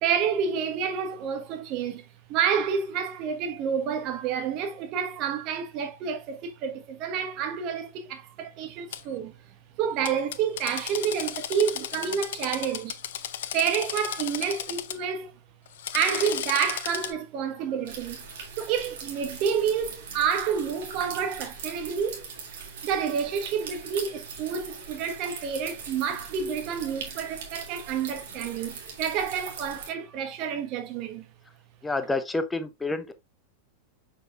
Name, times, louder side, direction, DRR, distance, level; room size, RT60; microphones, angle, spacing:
voice 1, 0.0-9.3 9.8-13.0 13.5-15.3 15.9-18.2 18.6-22.3 22.8-31.3, right 7 dB, 40° right, 1.4 m, -29 dB
Drill, 8.9-9.0 10.0-15.0 15.7-17.1, left 11 dB, 55° left, 0.6 m, -34 dB
sound 1, 17.8-29.9, right 5 dB, 55° right, 2.5 m, -40 dB
voice 2, 31.8-33.1, left 3 dB, 10° left, 0.9 m, -28 dB
6.8 x 5.9 x 2.5 m
figure-of-eight pair, 90°, 0 cm